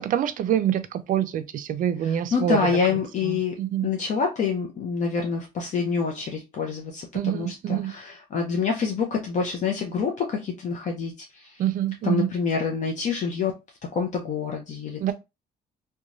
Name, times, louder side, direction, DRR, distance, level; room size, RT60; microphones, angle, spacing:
voice 1, 0.0-2.7 3.2-3.9 7.1-7.9 11.6-12.3 15.0-15.1, right 10 dB, 55° right, 0.4 m, -26 dB
voice 2, 2.0-3.5 3.8-11.6 12.0-13.5 13.9-15.1, left 5 dB, 45° left, 0.6 m, -27 dB
2.9 x 2.2 x 2.5 m
cardioid pair, 110°, 17 cm